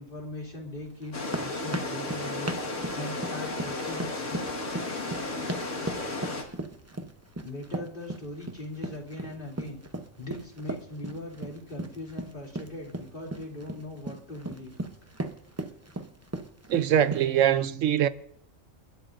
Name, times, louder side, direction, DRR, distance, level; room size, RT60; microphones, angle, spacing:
voice 1, 0.0-4.1 7.4-9.8 10.2-14.8, left 1 dB, 40° left, 3.3 m, -40 dB
sound 1, 1.0-17.4, right 2 dB, 15° right, 0.7 m, -37 dB
sound 2, 1.1-6.4, left 2 dB, 70° left, 2.2 m, -34 dB
voice 2, 16.7-18.1, right 10 dB, 75° right, 1.1 m, -23 dB
29.0 x 12.0 x 2.6 m
omnidirectional pair, 1.4 m